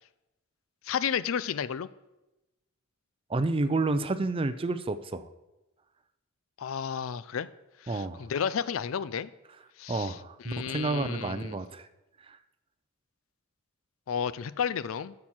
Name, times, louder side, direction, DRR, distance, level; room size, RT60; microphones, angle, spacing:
voice 1, 0.8-1.9 6.6-7.5 7.8-9.3 9.8-10.2 10.4-11.5 14.1-15.1, left 7 dB, 75° left, 17 dB, 0.4 m, -32 dB
voice 2, 3.3-5.3 7.9-8.3 9.9-11.9 12.3-12.4, right 2 dB, 25° right, 12 dB, 0.5 m, -30 dB
13.0 x 6.3 x 4.4 m, 0.98 s
head